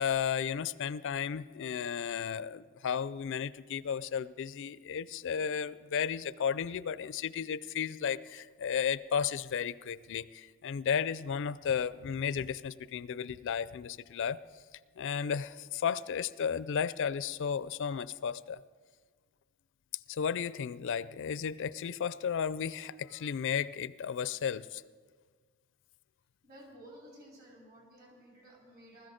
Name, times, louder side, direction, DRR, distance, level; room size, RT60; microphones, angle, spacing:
voice 1, 0.0-14.4 15.0-18.6 20.1-24.8, left 7 dB, 60° left, 17 dB, 0.4 m, -34 dB
voice 2, 26.4-29.1, right 1 dB, 50° right, -2 dB, 5.0 m, -54 dB
20.0 x 14.0 x 5.1 m, 1.5 s
head